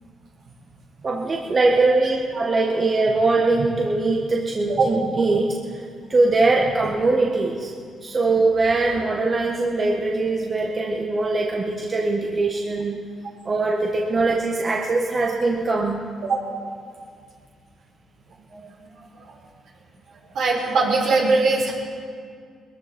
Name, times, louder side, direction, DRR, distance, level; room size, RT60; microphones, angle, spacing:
voice 1, 1.0-5.6 6.1-7.7 8.0-13.0 13.4-16.0, right 3 dB, 35° right, -1 dB, 1.6 m, -21 dB
voice 2, 20.3-21.7, right 3 dB, 70° right, -2 dB, 4.8 m, -21 dB
21.5 x 14.0 x 4.5 m, 2.1 s
cardioid pair, 90°, 0 cm